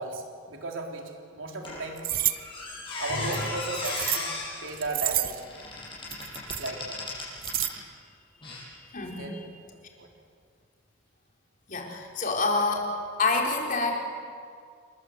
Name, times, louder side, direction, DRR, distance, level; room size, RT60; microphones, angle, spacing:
voice 1, 0.0-2.1 3.0-4.3 4.6-5.4 6.5-7.0 9.0-9.5 10.0-10.1, right 2 dB, 75° right, 2 dB, 3.7 m, -35 dB
Squeak, 1.6-7.8 8.4-8.6, left 3 dB, 25° left, 7.3 m, -36 dB
sound 1, 2.0-2.4 3.3-4.2 4.7-5.4 6.1-6.7 7.2-7.7, right 14 dB, 45° right, 0.8 m, -29 dB
voice 2, 8.9-9.4 11.7-12.9 13.2-14.0, left 3 dB, 40° left, 0 dB, 4.1 m, -27 dB
28.5 x 20.5 x 8.0 m, 2.2 s
head